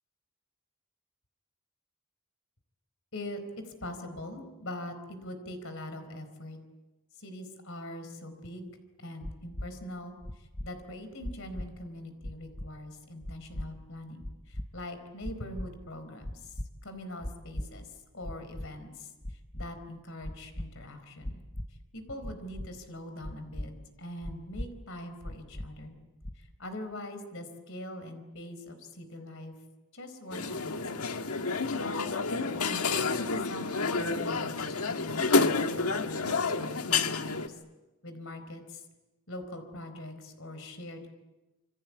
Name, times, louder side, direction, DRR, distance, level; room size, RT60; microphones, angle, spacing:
voice 1, 3.1-6.6 7.2-8.7 9.0-21.4 21.9-23.7 24.0-26.0 26.4-29.5 29.9-31.1 31.4-33.2 33.5-37.6 38.0-38.8 39.3-41.1, left 1 dB, 60° left, 8 dB, 4.3 m, -43 dB
sound 1, 9.2-9.7 10.2-10.7 11.2-11.7 12.2-12.7 13.2-13.7 14.2-14.7 15.2-15.7 16.2-16.7 17.2-17.7 18.2-18.7 19.2-19.7 20.2-20.7 21.2-21.7 22.2-22.7 23.2-23.7 24.2-24.7 25.2-25.7 26.2-26.6, left 1 dB, 25° left, 1.1 m, -37 dB
sound 2, 30.3-37.5, left 4 dB, 80° left, 1.6 m, -29 dB
28.0 x 25.0 x 8.6 m, 1.1 s
head